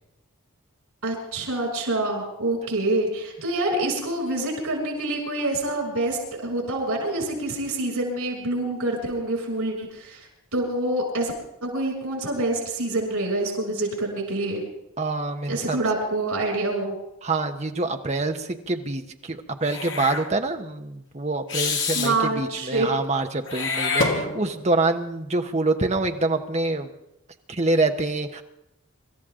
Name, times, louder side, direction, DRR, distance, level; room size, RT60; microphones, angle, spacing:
voice 1, 1.0-10.2 10.5-11.3 11.6-14.6 15.5-16.9 21.9-22.9, right 2 dB, 85° right, 0 dB, 6.7 m, -26 dB
voice 2, 15.0-15.8 17.2-26.9 27.5-28.4, right 2 dB, 30° right, 6 dB, 1.0 m, -26 dB
Meow / Hiss, 19.6-20.2 21.5-22.1 23.5-24.7, left 4 dB, 55° left, 2.4 m, -26 dB
26.0 x 13.5 x 3.8 m, 0.86 s
head